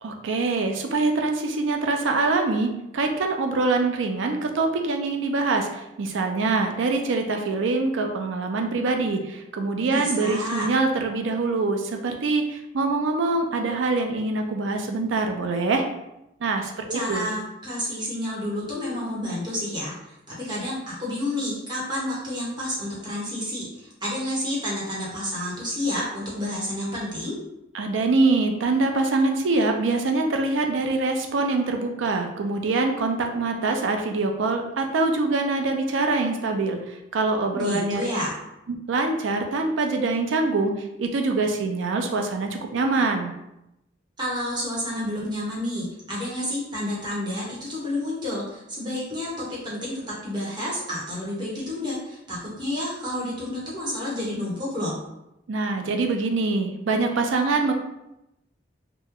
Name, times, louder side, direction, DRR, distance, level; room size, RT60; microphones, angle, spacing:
voice 1, 0.0-15.8 16.4-17.3 27.7-38.1 38.7-40.7 41.0-43.3 55.5-57.7, right 3 dB, 85° right, 4 dB, 0.5 m, -24 dB
voice 2, 9.9-10.7 16.9-27.4 37.5-38.4 44.2-55.0, left 1 dB, 25° right, -6 dB, 1.0 m, -30 dB
3.0 x 2.2 x 3.5 m, 0.88 s
head